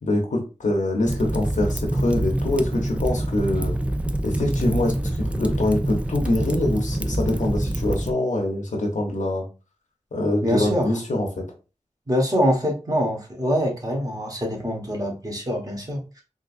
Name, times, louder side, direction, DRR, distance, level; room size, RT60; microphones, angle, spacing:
voice 1, 0.0-3.7 4.2-9.5 10.1-11.3, left 1 dB, 85° left, 1 dB, 0.9 m, -24 dB
Fire, 1.0-8.1, right 1 dB, 10° right, 0.4 m, -26 dB
voice 2, 10.4-10.9 12.1-16.2, equal, 30° right, 1 dB, 1.3 m, -24 dB
3.8 x 2.7 x 2.6 m, 0.32 s
cardioid pair, 50°, 12 cm